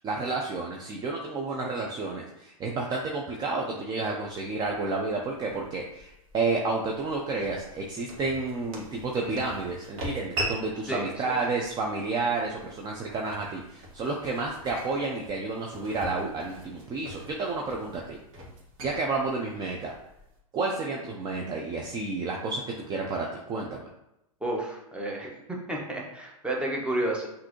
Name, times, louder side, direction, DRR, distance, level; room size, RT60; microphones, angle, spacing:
voice 1, 0.0-18.2 18.8-19.9 20.5-23.9, right 3 dB, 25° right, 0 dB, 0.5 m, -31 dB
sound 1, 4.3-20.4, right 1 dB, 45° right, 1.6 m, -42 dB
voice 2, 10.9-11.4 24.4-27.3, right 1 dB, 5° right, -2 dB, 0.9 m, -31 dB
5.9 x 2.6 x 3.0 m, 0.86 s
hypercardioid pair, 115°, 18 cm